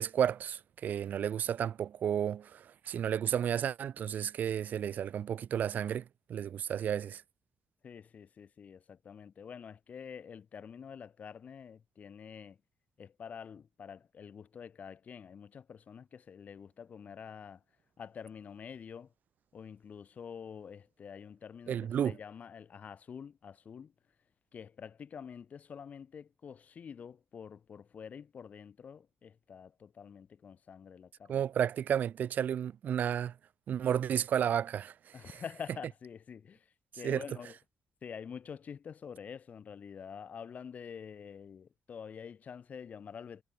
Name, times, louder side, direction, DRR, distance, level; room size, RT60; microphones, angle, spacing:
voice 1, 0.0-7.2 21.7-22.1 31.3-33.4 33.7-35.3 37.0-37.2, right 9 dB, 65° right, 1.8 m, -32 dB
voice 2, 7.8-12.6 13.0-17.6 18.0-19.1 19.5-23.9 24.5-31.5 35.1-37.6 38.0-43.4, left 7 dB, 55° left, 4.4 m, -47 dB
cardioid pair, 90°, 3 cm